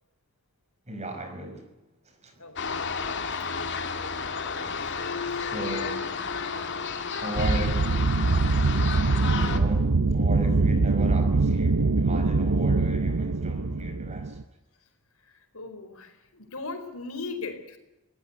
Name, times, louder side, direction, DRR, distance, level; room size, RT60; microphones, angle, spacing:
voice 1, 0.9-1.7 2.1-2.4 5.3-6.1 7.2-8.1 9.4-14.4, right 1 dB, 30° right, 5.3 m, -36 dB
voice 2, 2.4-2.8 8.9-9.3 14.8-14.9 15.2-17.8, left 3 dB, 70° left, 4.6 m, -39 dB
sound 1, 2.6-9.6, left 5 dB, 55° left, 2.4 m, -32 dB
sound 2, 7.3-14.4, right 3 dB, 80° right, 0.8 m, -23 dB
25.5 x 18.5 x 9.9 m
head